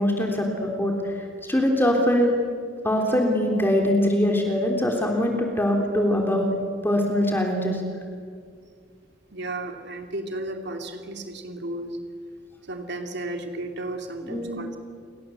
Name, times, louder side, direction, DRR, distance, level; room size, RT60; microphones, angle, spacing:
voice 1, 0.0-2.4 2.8-6.5 6.8-7.8 14.2-14.6, left 1 dB, 10° left, 1 dB, 3.4 m, -23 dB
voice 2, 9.3-12.0 12.7-14.8, right 2 dB, 60° right, 5 dB, 2.7 m, -33 dB
29.5 x 23.5 x 7.9 m, 2.1 s
head